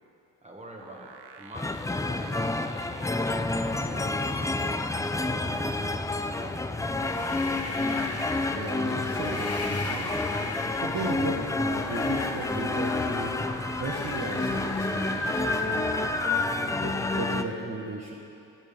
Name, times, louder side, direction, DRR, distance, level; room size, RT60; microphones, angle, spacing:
voice 1, 0.4-2.4 3.0-6.9, right 1 dB, 15° right, 0 dB, 1.7 m, -46 dB
sound 1, 0.8-16.1, right 5 dB, 65° right, 1.0 m, -52 dB
sound 2, 1.5-17.4, left 2 dB, 10° left, 0.4 m, -29 dB
sound 3, 6.7-16.5, left 3 dB, 35° left, 1.6 m, -35 dB
voice 2, 8.5-10.1 10.8-13.3 13.8-15.9 16.6-18.1, right 2 dB, 40° right, -2 dB, 1.3 m, -36 dB
18.5 x 7.1 x 3.5 m, 2.7 s
supercardioid pair, 65°, 42 cm